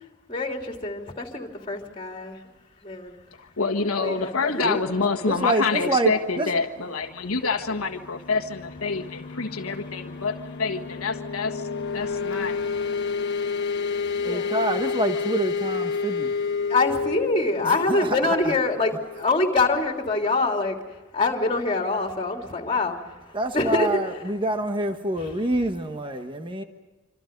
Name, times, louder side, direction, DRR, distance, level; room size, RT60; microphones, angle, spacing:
voice 1, 0.3-2.4 2.8-3.1 4.0-4.8 14.2-14.6 16.7-20.8 21.1-24.2 25.1-25.3, left 3 dB, 25° left, 2 dB, 3.1 m, -25 dB
voice 2, 3.4-11.7 11.9-12.6, left 4 dB, 90° left, 4 dB, 1.5 m, -27 dB
voice 3, 5.3-6.1 6.4-6.5 14.2-16.3 17.7-18.1 23.3-26.6, right 1 dB, 25° right, 6 dB, 1.2 m, -26 dB
sound 1, 7.5-20.1, left 5 dB, 55° left, 1.6 m, -30 dB
27.0 x 26.0 x 5.3 m, 1.2 s
head